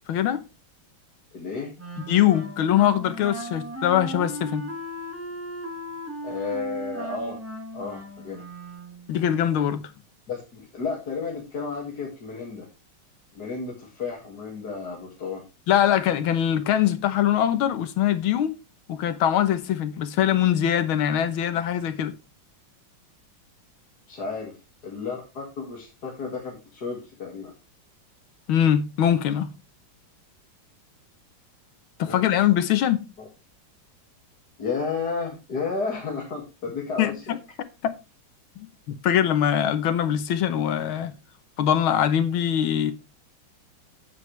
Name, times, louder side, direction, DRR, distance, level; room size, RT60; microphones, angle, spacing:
voice 1, 0.1-0.4 2.1-4.7 9.1-9.9 15.7-18.5 18.9-22.1 28.5-29.5 32.0-33.1 37.0-37.4 37.8-37.9 38.9-41.1 41.6-42.9, left 10 dB, 85° left, 1.8 m, -22 dB
voice 2, 1.3-1.7 6.2-7.4 7.7-8.4 10.3-12.7 13.3-15.4 24.1-24.6 24.8-27.5 32.1-32.2 33.2-33.3 34.6-37.4, left 4 dB, 50° left, 2.6 m, -32 dB
Wind instrument woodwind instrument, 1.8-9.2, right 1 dB, 5° right, 1.7 m, -37 dB
9.7 x 8.8 x 3.3 m
omnidirectional pair, 2.2 m